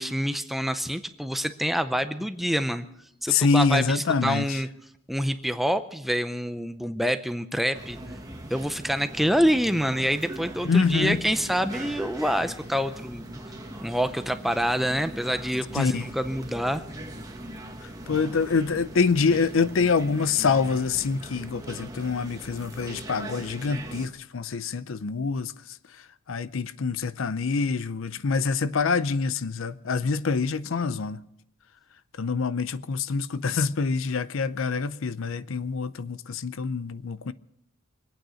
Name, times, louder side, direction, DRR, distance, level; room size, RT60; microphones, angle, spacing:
voice 1, 0.0-2.9 3.2-4.7 5.1-8.0 8.5-13.4 13.8-16.8, equal, ahead, 0.6 m, -26 dB
voice 2, 3.3-4.6 10.6-11.2 15.7-16.0 18.1-25.5 26.3-31.2 32.2-37.3, left 5 dB, 70° left, 0.5 m, -25 dB
sound 1, 7.7-24.1, right 1 dB, 15° right, 1.4 m, -40 dB
24.5 x 9.1 x 6.3 m
head